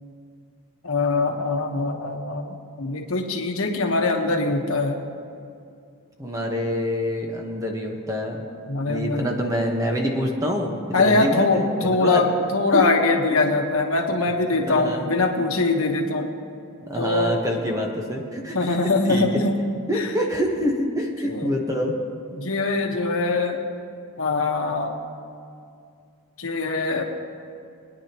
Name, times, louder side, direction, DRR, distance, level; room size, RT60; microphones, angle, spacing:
voice 1, 0.8-5.0 8.7-9.3 10.9-16.3 16.9-17.3 18.5-19.6 19.9-20.1 21.2-21.5 22.4-23.6 24.2-25.0 26.4-27.0, left 3 dB, 70° left, 2 dB, 1.2 m, -22 dB
voice 2, 6.2-8.4 8.9-12.2 12.7-12.9 13.3-13.4 14.5-15.1 16.9-19.3 19.9-21.9, equal, 15° right, 1 dB, 1.2 m, -26 dB
21.5 x 9.8 x 3.0 m, 2.4 s
head